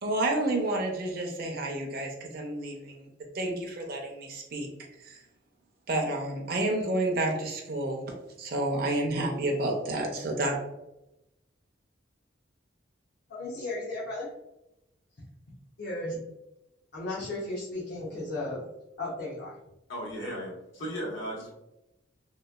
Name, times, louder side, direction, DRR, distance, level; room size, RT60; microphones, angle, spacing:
voice 1, 0.0-3.0 3.3-4.7 5.0-5.2 5.9-8.0 8.4-10.6, right 1 dB, 50° right, 1 dB, 0.5 m, -30 dB
voice 2, 13.3-14.3 15.8-16.2 16.9-18.7 19.0-19.6, left 2 dB, 55° left, -7 dB, 0.6 m, -35 dB
voice 3, 19.9-21.5, equal, 75° left, -3 dB, 1.0 m, -36 dB
2.9 x 2.2 x 2.2 m, 0.90 s
head